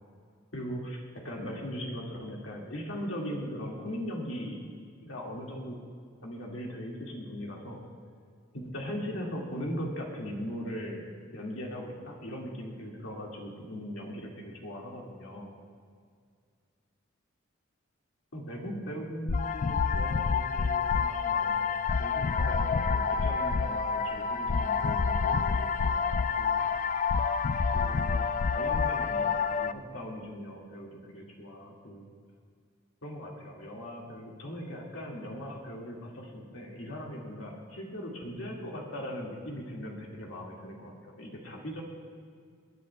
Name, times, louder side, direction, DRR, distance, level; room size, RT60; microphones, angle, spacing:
voice 1, 0.5-4.6 5.0-5.8 6.2-7.8 8.5-11.0 11.3-15.6 18.3-26.7 27.7-32.1 33.0-41.8, equal, 85° left, -2 dB, 2.0 m, -39 dB
sound 1, 19.3-29.7, left 5 dB, 40° left, 0.3 m, -28 dB
26.0 x 10.0 x 2.3 m, 2.1 s
head